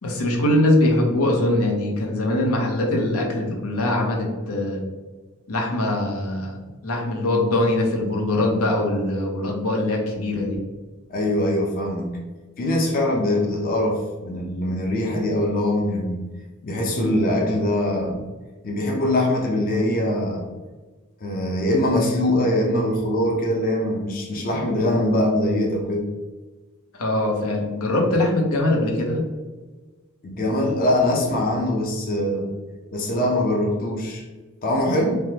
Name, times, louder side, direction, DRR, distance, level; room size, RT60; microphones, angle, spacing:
voice 1, 0.0-4.8 5.5-6.6 6.8-10.6 26.9-29.2, left 1 dB, 90° left, 0 dB, 0.7 m, -22 dB
voice 2, 11.1-12.1 12.6-16.2 16.6-18.2 18.6-20.4 21.2-26.1 30.2-32.5 32.9-34.3 34.6-35.2, left 1 dB, 40° left, -1 dB, 0.5 m, -22 dB
3.3 x 2.1 x 2.8 m, 1.3 s
head